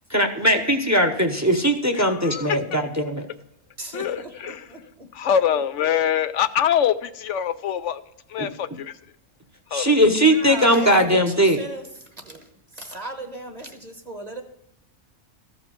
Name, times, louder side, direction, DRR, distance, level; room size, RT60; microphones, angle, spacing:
voice 1, 0.1-3.3 8.4-8.5 9.7-11.6, equal, 15° right, 6 dB, 0.9 m, -19 dB
voice 2, 1.9-2.8 3.9-4.8 5.1-8.0 8.3-8.9 9.7-9.9, left 9 dB, 70° left, 11 dB, 0.9 m, -24 dB
voice 3, 3.8-5.1 10.4-11.8 12.2-12.4 12.8-14.4, right 2 dB, 35° right, 5 dB, 1.3 m, -36 dB
14.5 x 5.1 x 7.1 m, 0.80 s
omnidirectional pair, 1.3 m